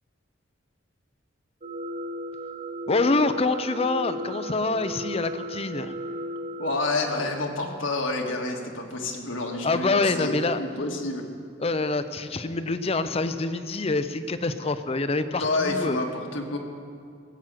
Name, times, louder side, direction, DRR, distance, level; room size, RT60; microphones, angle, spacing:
sound 1, 1.6-6.7, right 1 dB, 35° right, 0.6 m, -35 dB
voice 1, 2.9-5.9 9.6-10.6 11.6-16.0, left 3 dB, 30° left, 11 dB, 0.5 m, -26 dB
voice 2, 6.6-11.2 15.4-16.6, left 2 dB, 75° left, 2 dB, 1.7 m, -28 dB
17.5 x 7.7 x 7.6 m, 2.3 s
head